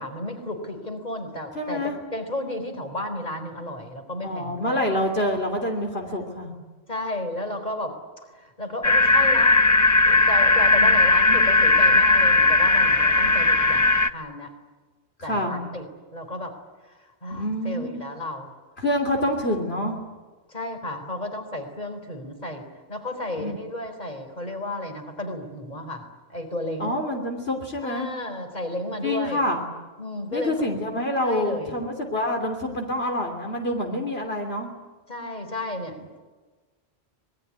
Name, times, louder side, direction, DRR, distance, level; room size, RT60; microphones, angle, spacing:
voice 1, 0.0-4.8 6.9-7.9 8.3-9.6 10.0-13.8 14.1-14.5 15.2-15.9 16.1-16.5 17.2-18.5 20.5-22.6 22.9-26.0 26.3-27.0 27.8-29.4 30.0-30.5 31.2-31.7 35.1-36.2, left 1 dB, 40° left, 6 dB, 4.3 m, -32 dB
voice 2, 1.6-2.0 4.2-6.5 10.8-10.9 11.3-11.4 15.2-15.6 17.3-18.0 18.8-20.0 23.4-23.5 26.8-28.1 29.0-29.6 30.3-34.7, left 1 dB, 70° left, 2 dB, 3.5 m, -27 dB
sound 1, 8.8-14.1, left 2 dB, 20° left, 0.7 m, -18 dB
26.0 x 21.5 x 9.6 m, 1.3 s
omnidirectional pair, 1.1 m